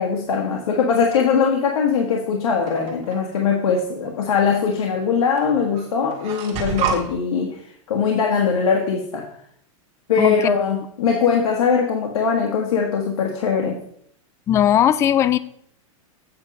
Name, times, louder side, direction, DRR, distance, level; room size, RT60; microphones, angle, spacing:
voice 1, 0.0-7.6 7.9-9.3 10.1-13.8, left 6 dB, 85° left, 1 dB, 1.6 m, -21 dB
sound 1, 2.7-3.2 4.3-4.4 5.4-5.5 5.7-7.0, right 6 dB, 35° right, 2.1 m, -27 dB
voice 2, 14.5-15.4, left 10 dB, 15° left, 15 dB, 0.3 m, -17 dB
8.7 x 6.2 x 5.4 m, 0.68 s
supercardioid pair, 150°, 17 cm